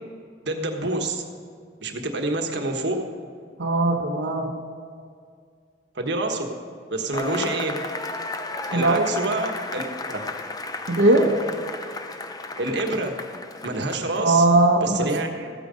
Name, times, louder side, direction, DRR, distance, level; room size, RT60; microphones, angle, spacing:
voice 1, 0.4-1.2 1.8-3.0 5.9-6.5 6.9-7.8 8.7-10.3 12.6-13.2 13.6-14.4 14.8-15.5, right 2 dB, 65° right, 4 dB, 1.3 m, -27 dB
voice 2, 3.6-4.5 8.7-9.1 10.9-11.3 14.2-15.1, right 2 dB, 80° right, -1 dB, 1.1 m, -19 dB
Cheering / Applause / Crowd, 7.1-14.4, left 2 dB, 20° left, 0.7 m, -34 dB
14.0 x 9.2 x 5.2 m, 2.1 s
head